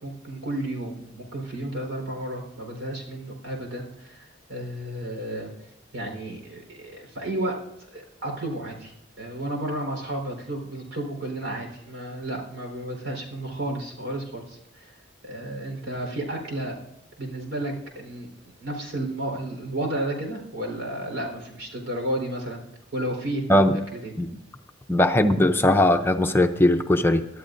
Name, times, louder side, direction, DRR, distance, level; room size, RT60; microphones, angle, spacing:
voice 1, 0.0-5.5 5.9-7.6 7.9-14.9 15.2-16.8 17.2-22.6 22.9-23.4 23.7-24.1, right 1 dB, 85° right, 2 dB, 4.0 m, -32 dB
voice 2, 24.9-27.3, left 1 dB, 10° left, 6 dB, 0.5 m, -19 dB
22.5 x 12.5 x 2.6 m, 0.83 s
head